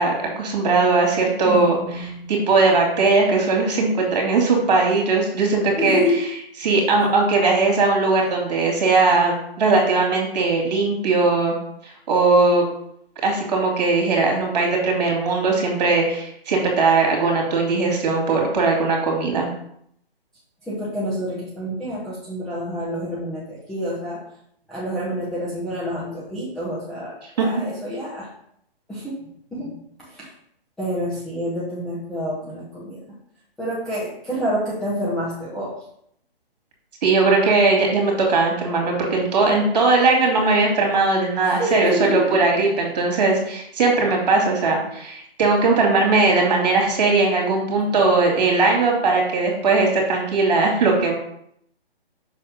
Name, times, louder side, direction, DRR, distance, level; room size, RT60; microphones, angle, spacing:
voice 1, 0.0-6.0 6.6-11.5 12.1-12.7 13.2-19.5 27.4-27.5 37.0-51.1, right 3 dB, 45° right, 0 dB, 2.6 m, -19 dB
voice 2, 1.4-2.3 5.8-6.2 20.7-24.2 24.7-28.3 28.9-30.3 30.8-33.0 33.6-35.8 41.4-42.4, equal, ahead, -11 dB, 0.6 m, -28 dB
6.0 x 4.2 x 5.1 m, 0.70 s
hypercardioid pair, 155°, 30 cm